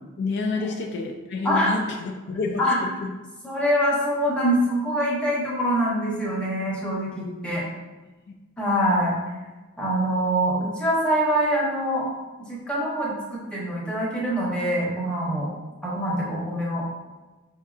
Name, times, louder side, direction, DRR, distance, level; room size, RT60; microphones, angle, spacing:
voice 1, 0.2-2.6 3.0-3.1, left 3 dB, 55° left, 2 dB, 0.3 m, -28 dB
voice 2, 1.4-1.8 2.6-2.8 3.4-7.7 8.6-9.1 9.8-12.1 12.5-15.5 15.8-16.8, equal, 5° left, -6 dB, 1.0 m, -24 dB
5.3 x 2.7 x 2.4 m, 1.2 s
head